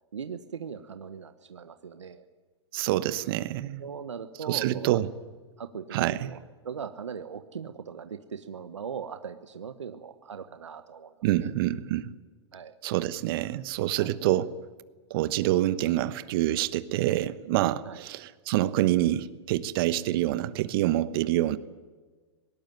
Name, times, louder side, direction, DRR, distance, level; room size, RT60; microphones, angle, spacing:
voice 1, 0.1-2.2 3.8-5.0 5.6-6.4 6.6-11.5 12.5-12.7 14.0-14.1 17.8-18.0, right 7 dB, 90° right, 9 dB, 1.3 m, -39 dB
voice 2, 2.7-3.8 4.5-5.1 5.9-6.3 11.2-12.1 12.8-14.5 15.1-21.6, right 14 dB, 55° right, 15 dB, 1.1 m, -26 dB
20.0 x 18.5 x 9.4 m, 1.4 s
hypercardioid pair, 120°, 15 cm